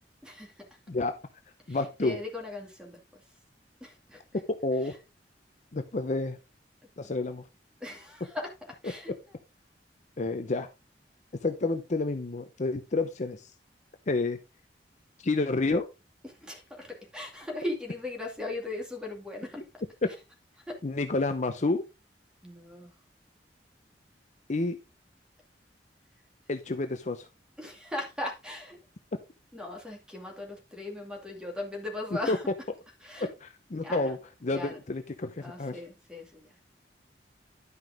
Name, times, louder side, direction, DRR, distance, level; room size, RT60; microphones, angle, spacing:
voice 1, 0.2-0.5 1.7-3.2 3.8-4.4 4.8-5.0 7.8-8.5 8.8-9.4 16.2-19.6 20.7-20.8 22.4-22.9 27.6-28.8 29.5-32.5 33.0-33.3 33.8-34.2 34.5-34.8 35.4-36.6, left 2 dB, 5° right, 1 dB, 2.3 m, -38 dB
voice 2, 1.7-2.1 4.5-4.9 5.7-6.4 7.0-7.4 10.2-10.7 11.4-13.4 14.1-14.4 15.2-15.9 20.8-21.8 24.5-24.8 26.5-27.3 32.3-32.4 33.7-34.2 34.4-35.7, left 3 dB, 45° left, 8 dB, 0.6 m, -29 dB
11.0 x 5.7 x 3.5 m, 0.28 s
head